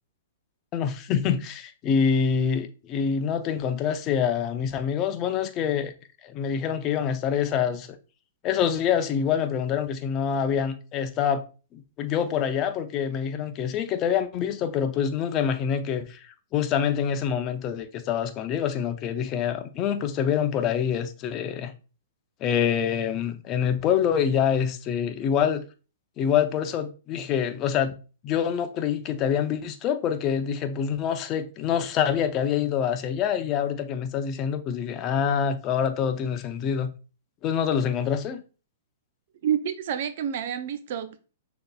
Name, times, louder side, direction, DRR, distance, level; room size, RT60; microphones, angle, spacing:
voice 1, 0.7-5.9 6.2-7.9 8.4-11.4 11.7-16.2 16.5-21.7 22.4-25.6 26.2-27.9 28.2-36.9 37.4-38.4, left 8 dB, 35° left, 0.6 m, -26 dB
voice 2, 39.4-41.2, right 9 dB, 55° right, 0.5 m, -28 dB
6.3 x 2.8 x 2.3 m
hypercardioid pair, 125°, 0 cm